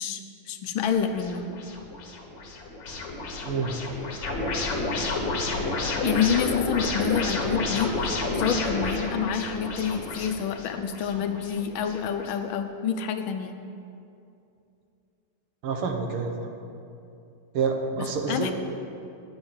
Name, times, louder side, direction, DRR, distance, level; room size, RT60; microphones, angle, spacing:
voice 1, 0.0-1.5 6.0-8.1 8.3-13.6 18.3-18.5, left 7 dB, 75° left, 7 dB, 1.3 m, -28 dB
sound 1, 0.8-12.3, left 2 dB, 60° left, 1.9 m, -31 dB
voice 2, 3.4-3.7 15.6-16.5 17.5-18.5, right 5 dB, 80° right, 3 dB, 1.9 m, -28 dB
9.7 x 6.4 x 8.7 m, 2.6 s
omnidirectional pair, 2.4 m